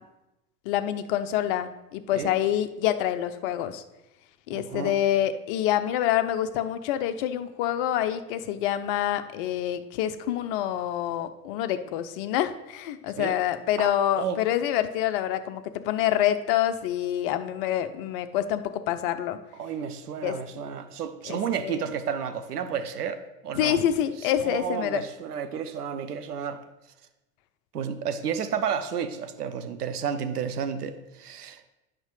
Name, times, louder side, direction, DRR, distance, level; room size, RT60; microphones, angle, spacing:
voice 1, 0.7-3.8 4.5-19.4 20.2-20.4 21.2-21.8 23.6-25.0, left 11 dB, 35° left, 10 dB, 0.5 m, -27 dB
voice 2, 4.5-4.9 13.2-13.3 13.8-13.9 14.2-14.4 19.6-23.8 24.4-26.6 27.7-31.6, right 7 dB, 80° right, 9 dB, 0.6 m, -31 dB
8.8 x 5.8 x 3.3 m, 0.99 s
figure-of-eight pair, 80°, 46 cm